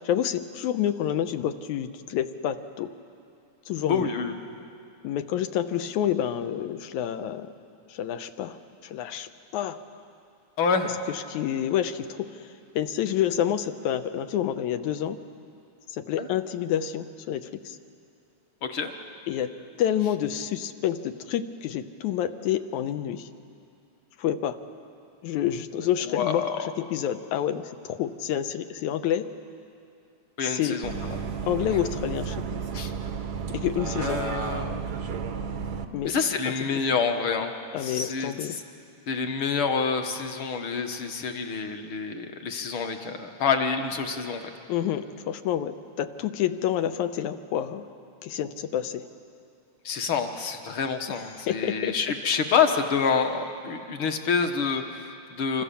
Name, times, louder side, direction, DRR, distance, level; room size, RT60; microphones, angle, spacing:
voice 1, 0.0-2.9 3.7-4.1 5.0-7.5 7.9-8.6 8.8-9.8 11.1-12.5 12.8-15.2 15.9-17.8 19.3-19.5 19.8-23.3 24.2-24.6 25.2-29.3 30.4-30.8 31.4-32.6 33.5-34.2 35.9-36.3 36.6-36.8 37.7-38.6 44.7-47.8 48.2-49.1 51.5-52.0, left 10 dB, 85° left, 9 dB, 2.3 m, -28 dB
voice 2, 3.9-4.3 10.6-11.0 16.2-16.3 18.6-18.9 26.1-26.7 30.4-31.2 32.7-32.9 34.0-34.8 36.1-37.5 37.8-38.6 39.1-44.4 49.8-55.6, left 5 dB, 50° left, 5 dB, 1.9 m, -27 dB
Bus, 30.8-35.8, right 6 dB, 70° right, 0.9 m, -32 dB
27.0 x 25.0 x 7.0 m, 2.5 s
omnidirectional pair, 3.3 m